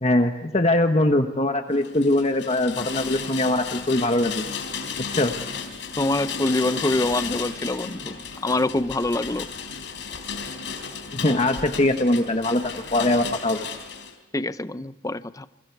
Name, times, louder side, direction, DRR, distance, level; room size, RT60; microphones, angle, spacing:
voice 1, 0.0-4.5 5.1-5.3 11.1-12.6 12.9-13.6, left 1 dB, 35° left, 5 dB, 1.3 m, -22 dB
Rain, 1.8-14.1, left 6 dB, 75° left, 3.9 m, -34 dB
voice 2, 6.0-8.1 8.4-9.5 14.3-15.5, left 2 dB, 20° left, 13 dB, 0.6 m, -25 dB
29.5 x 23.5 x 4.8 m, 1.1 s
head